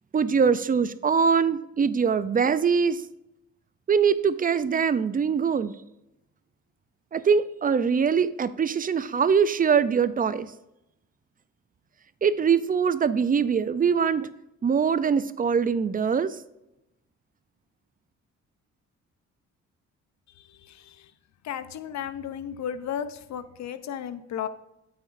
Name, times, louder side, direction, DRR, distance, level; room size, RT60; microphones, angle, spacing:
voice 1, 0.1-3.0 3.9-5.7 7.1-10.5 12.2-14.3 14.6-16.4, right 6 dB, 30° right, 15 dB, 0.5 m, -23 dB
voice 2, 20.4-21.1 21.4-24.5, left 9 dB, 65° left, 12 dB, 0.8 m, -34 dB
9.2 x 7.9 x 2.6 m, 0.88 s
cardioid pair, 90°, 30 cm